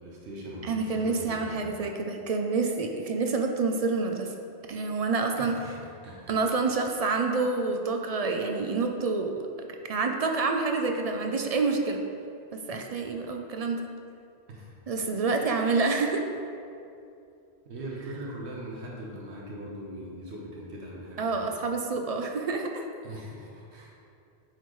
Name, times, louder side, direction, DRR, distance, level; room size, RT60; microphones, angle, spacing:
voice 1, 0.0-1.7 5.4-6.4 14.5-14.8 17.7-21.4 23.0-24.0, right 1 dB, 85° right, -3 dB, 1.3 m, -41 dB
voice 2, 0.7-4.3 4.7-5.5 6.3-12.0 12.7-13.8 14.9-16.2 21.2-22.8, right 4 dB, 55° right, 3 dB, 0.4 m, -28 dB
8.9 x 4.4 x 3.1 m, 2.6 s
omnidirectional pair, 1.1 m